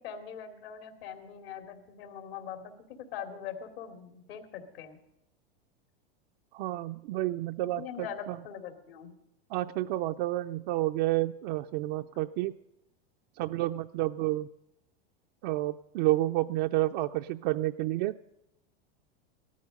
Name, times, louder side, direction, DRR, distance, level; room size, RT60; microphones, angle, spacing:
voice 1, 0.0-5.0 7.8-9.1, left 8 dB, 75° left, 6 dB, 2.8 m, -42 dB
voice 2, 6.5-8.4 9.5-12.5 13.4-14.5 15.4-18.1, right 17 dB, 55° right, 5 dB, 0.5 m, -30 dB
17.0 x 13.5 x 5.3 m, 0.83 s
supercardioid pair, 120°, 30 cm